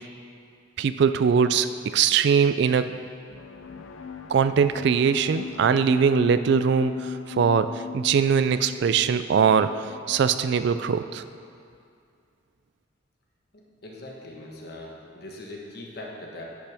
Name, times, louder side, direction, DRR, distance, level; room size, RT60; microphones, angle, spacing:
voice 1, 0.8-3.0 4.3-9.7 10.1-11.2, right 6 dB, 60° right, 12 dB, 0.3 m, -21 dB
sound 1, 3.3-10.9, left 6 dB, 90° left, 0.5 m, -38 dB
voice 2, 13.8-16.4, left 2 dB, 55° left, -2 dB, 1.3 m, -40 dB
10.0 x 8.6 x 3.4 m, 2.3 s
head